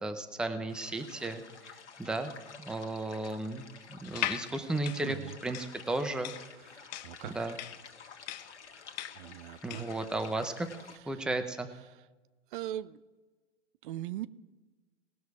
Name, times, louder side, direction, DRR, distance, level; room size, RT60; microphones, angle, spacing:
voice 1, 0.0-2.3 2.6-5.2 5.4-6.3 7.2-7.6 9.6-10.7 11.1-11.7, right 2 dB, ahead, 8 dB, 0.6 m, -34 dB
sound 1, 0.7-11.0, left 6 dB, 85° left, 1.3 m, -51 dB
sound 2, 4.0-10.0, left 15 dB, 40° left, 0.5 m, -39 dB
voice 2, 5.0-5.4 6.7-7.7 9.1-9.9 10.9-11.3 11.9-12.0 12.5-13.0 13.8-14.3, right 12 dB, 50° right, 16 dB, 0.6 m, -41 dB
19.0 x 6.3 x 4.7 m, 1.2 s
hypercardioid pair, 120°, 34 cm